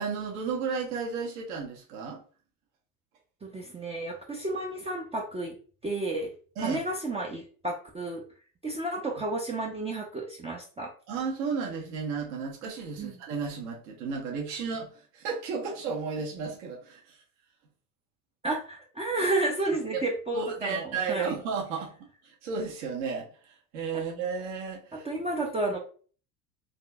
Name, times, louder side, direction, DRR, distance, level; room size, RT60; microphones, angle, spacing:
voice 1, 0.0-2.2 6.6-6.8 11.1-17.2 19.9-20.0 20.3-21.9 22.2-25.1, right 5 dB, 60° right, -1 dB, 1.2 m, -33 dB
voice 2, 3.4-5.5 5.8-6.3 6.6-8.2 8.6-10.9 13.0-13.2 18.4-21.3 23.9-24.0 25.0-25.8, right 2 dB, 15° right, -1 dB, 0.5 m, -31 dB
4.1 x 2.6 x 2.3 m, 0.41 s
hypercardioid pair, 80°, 48 cm